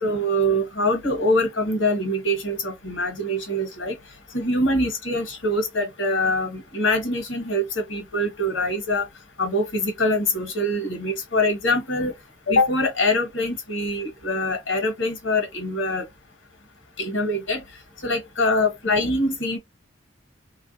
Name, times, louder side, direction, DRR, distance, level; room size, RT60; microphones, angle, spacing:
voice 1, 0.0-3.9 4.3-9.1 9.4-12.1 12.5-16.1 17.0-17.6 18.0-19.6, left 1 dB, 90° left, 1.1 m, -24 dB
3.1 x 2.4 x 2.6 m
head